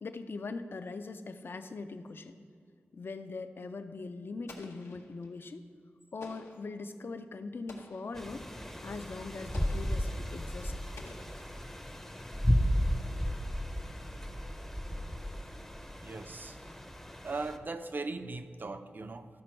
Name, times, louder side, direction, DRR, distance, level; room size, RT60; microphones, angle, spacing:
voice 1, 0.0-2.4 2.9-5.7 6.1-8.5 8.8-10.7, left 3 dB, 55° left, 9 dB, 0.5 m, -41 dB
Explosion, 4.5-5.4 6.2-6.8 7.7-8.2 9.5-10.1 11.0-11.8, left 2 dB, 90° left, 0.9 m, -51 dB
sound 1, 8.2-17.6, equal, 10° left, 0.6 m, -34 dB
voice 2, 16.0-16.6 17.2-19.3, right 3 dB, 50° right, 9 dB, 0.5 m, -39 dB
13.0 x 5.1 x 4.4 m, 2.3 s
wide cardioid pair, 75°, 4 cm